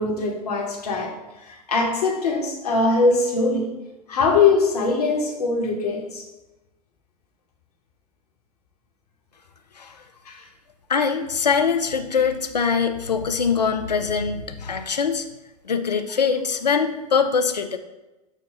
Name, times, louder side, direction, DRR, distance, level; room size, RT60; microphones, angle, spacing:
voice 1, 0.0-3.7 4.1-6.2 10.2-10.5, left 3 dB, 70° left, -1 dB, 1.0 m, -22 dB
voice 2, 10.9-15.2 15.7-17.8, left 6 dB, 85° left, 7 dB, 0.4 m, -23 dB
6.1 x 2.1 x 3.9 m, 1.0 s
figure-of-eight pair, 90°, 21 cm